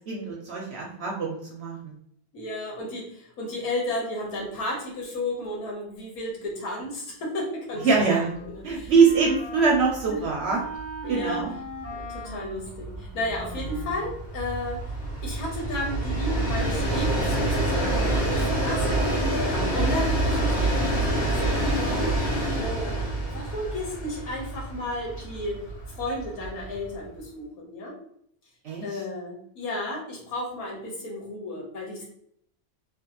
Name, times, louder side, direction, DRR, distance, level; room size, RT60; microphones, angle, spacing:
voice 1, 0.1-1.9 7.8-8.3 8.6-10.6 11.1-11.5 19.5-19.8 28.6-29.0, right 5 dB, 60° right, -2 dB, 0.7 m, -23 dB
voice 2, 2.3-7.9 8.4-8.9 10.1-10.2 11.0-11.4 12.0-14.9 15.2-21.0 21.4-22.2 22.6-23.0 23.3-27.9 28.8-32.0, left 1 dB, 80° left, -2 dB, 1.5 m, -33 dB
Wind instrument woodwind instrument, 7.7-14.3, right 2 dB, 10° left, 0.9 m, -39 dB
Train, 8.8-8.9 9.3-9.4 9.7-27.1, right 1 dB, 50° left, 1.2 m, -27 dB
3.2 x 2.2 x 2.9 m, 0.69 s
omnidirectional pair, 1.5 m